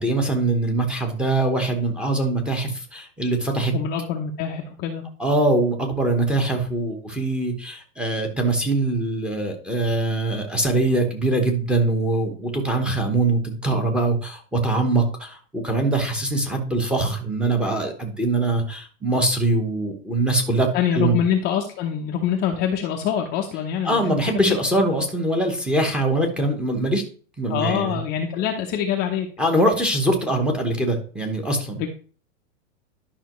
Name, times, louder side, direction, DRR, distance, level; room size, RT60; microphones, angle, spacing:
voice 1, 0.0-3.7 5.2-21.2 23.8-27.0 27.4-28.0 29.4-31.9, right 2 dB, ahead, 2 dB, 1.1 m, -23 dB
voice 2, 3.7-5.0 20.7-24.6 27.5-29.3 31.7-31.9, left 9 dB, 25° left, 1 dB, 0.7 m, -25 dB
11.5 x 5.7 x 3.1 m, 0.41 s
supercardioid pair, 155°, 40 cm